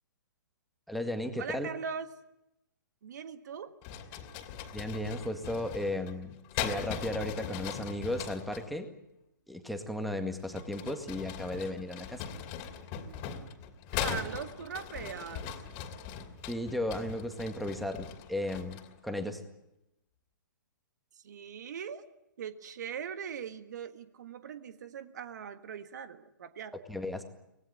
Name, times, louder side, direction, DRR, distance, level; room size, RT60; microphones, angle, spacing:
voice 1, 0.9-1.7 4.7-6.3 6.6-8.9 9.5-12.2 16.5-19.4 26.9-27.2, left 1 dB, ahead, 7 dB, 2.0 m, -35 dB
voice 2, 1.4-2.1 3.0-3.7 13.9-15.5 21.1-22.0 22.4-26.7, right 7 dB, 60° right, 10 dB, 1.5 m, -40 dB
sound 1, 3.8-8.7 10.4-19.0, left 8 dB, 35° left, 2.7 m, -40 dB
24.0 x 19.5 x 9.1 m, 0.87 s
figure-of-eight pair, 125°, 11 cm